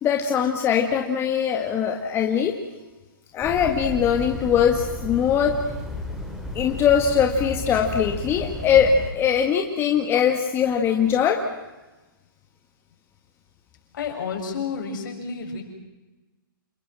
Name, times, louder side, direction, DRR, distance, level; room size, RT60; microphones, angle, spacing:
voice 1, 0.0-2.6 3.3-5.6 6.6-11.5, left 8 dB, 20° left, 3 dB, 2.0 m, -21 dB
sound 1, 3.4-9.1, left 2 dB, ahead, 4.3 m, -33 dB
voice 2, 13.9-15.6, left 5 dB, 60° left, 3 dB, 7.4 m, -30 dB
29.5 x 20.5 x 7.7 m, 1.1 s
hypercardioid pair, 140°, 12 cm